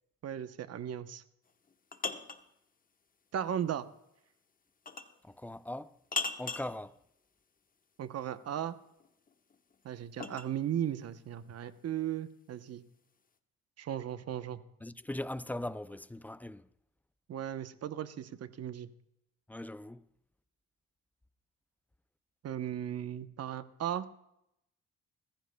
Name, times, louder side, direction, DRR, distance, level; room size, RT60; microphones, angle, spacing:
voice 1, 0.2-1.2 3.3-3.9 8.0-8.8 9.8-12.8 13.8-14.6 17.3-18.9 22.4-24.1, right 10 dB, 55° right, 0.9 m, -36 dB
sound 1, 1.5-2.5 4.9-5.2 6.1-6.7 9.0-10.5, left 4 dB, 30° left, 0.9 m, -38 dB
voice 2, 5.2-6.0 6.4-7.0 14.8-16.7 19.5-20.1, left 1 dB, 5° left, 0.4 m, -40 dB
21.0 x 14.5 x 2.2 m
cardioid pair, 90°, 30 cm